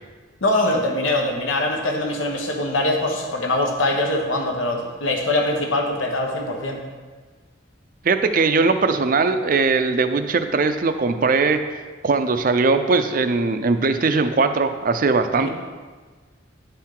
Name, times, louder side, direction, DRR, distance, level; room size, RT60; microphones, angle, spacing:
voice 1, 0.4-6.8 15.4-15.5, left 1 dB, 80° left, 2 dB, 1.1 m, -23 dB
voice 2, 8.0-15.5, right 4 dB, 45° right, 9 dB, 0.4 m, -20 dB
10.5 x 4.5 x 3.8 m, 1.4 s
head